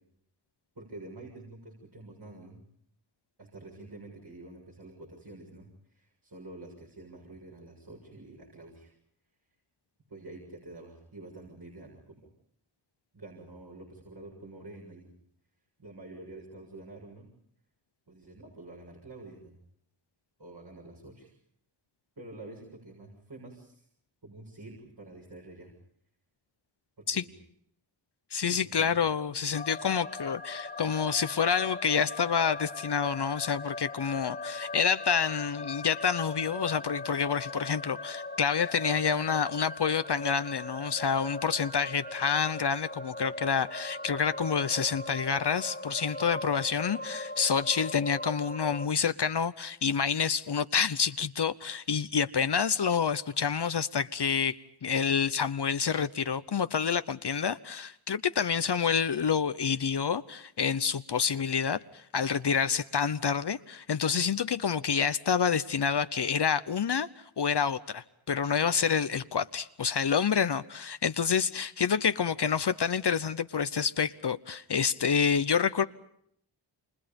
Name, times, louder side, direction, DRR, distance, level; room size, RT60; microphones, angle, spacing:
voice 1, 0.8-2.6 3.4-8.9 10.1-12.3 13.1-15.1 15.8-17.3 18.1-19.6 20.4-21.3 22.2-23.9 24.2-25.7 27.0-27.4 28.4-29.0, right 2 dB, 55° right, 6.9 m, -48 dB
voice 2, 28.3-67.1 67.4-75.9, left 6 dB, 55° left, 0.9 m, -28 dB
sound 1, 29.5-48.9, left 2 dB, 20° left, 2.4 m, -40 dB
30.0 x 26.5 x 5.3 m
cardioid pair, 55°, 47 cm